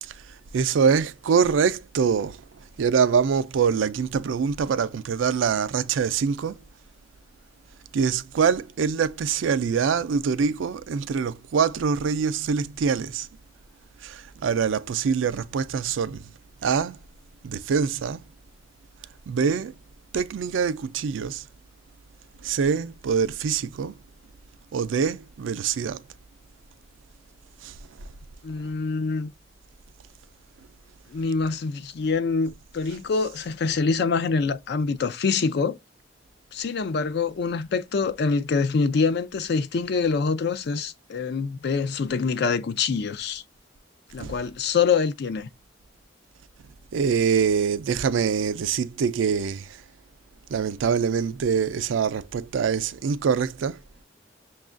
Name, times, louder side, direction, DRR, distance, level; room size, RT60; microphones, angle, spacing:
voice 1, 0.0-2.4 2.8-6.6 7.9-13.3 14.0-16.3 16.6-17.0 17.4-18.2 19.3-19.7 20.1-21.4 22.4-24.0 24.7-26.0 27.6-27.7 33.2-33.3 44.2-44.4 46.9-49.8 50.5-53.8, right 6 dB, 90° right, 0.4 m, -24 dB
voice 2, 28.4-29.3 31.1-35.8 36.5-43.4 44.1-45.5, left 5 dB, 60° left, 0.4 m, -25 dB
6.1 x 2.3 x 2.4 m
head